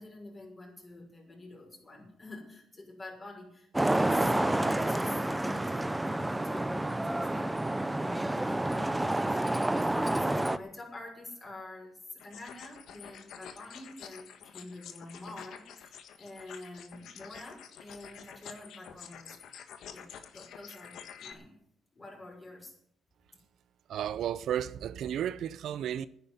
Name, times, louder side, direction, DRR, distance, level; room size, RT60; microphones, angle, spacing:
voice 1, 0.0-19.4 19.9-21.6 21.9-22.7, left 2 dB, 30° left, 6.0 m, -47 dB
Traffic noise roadway noise, 3.7-10.6, right 1 dB, 10° right, 0.7 m, -29 dB
sound 1, 12.2-21.3, left 8 dB, 75° left, 1.5 m, -49 dB
voice 2, 23.9-26.1, right 10 dB, 70° right, 0.5 m, -33 dB
10.5 x 9.9 x 9.7 m
cardioid pair, 90°, 0 cm